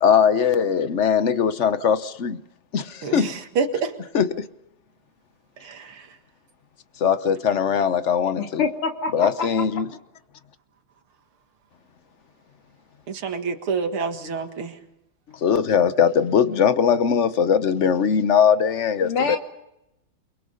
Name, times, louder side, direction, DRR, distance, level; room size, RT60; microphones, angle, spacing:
voice 1, 0.0-2.4 2.7-3.3 4.1-4.5 7.0-8.6 9.1-9.9 15.4-19.4, left 7 dB, 45° left, 1.0 m, -20 dB
voice 2, 3.0-3.9 5.6-6.0 13.1-14.7, right 5 dB, 80° right, 2.8 m, -27 dB
voice 3, 8.4-9.3 19.0-19.4, left 5 dB, 85° left, 3.4 m, -25 dB
29.0 x 23.5 x 5.6 m
omnidirectional pair, 2.4 m